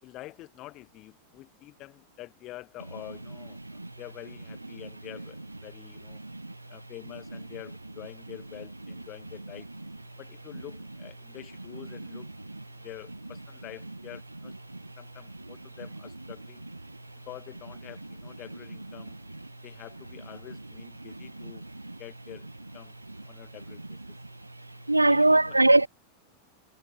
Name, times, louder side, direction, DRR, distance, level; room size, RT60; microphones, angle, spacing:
voice 1, 0.0-6.2 6.7-9.7 10.2-12.3 12.7-14.5 15.0-16.6 17.3-19.2 19.6-21.6 22.0-22.5 22.7-22.9 23.2-24.0 25.0-25.6, left 17 dB, 35° left, 4.9 m, -47 dB
voice 2, 6.2-6.5 24.9-25.9, right 2 dB, 85° right, 0.3 m, -20 dB
figure-of-eight pair, 90°, 0 cm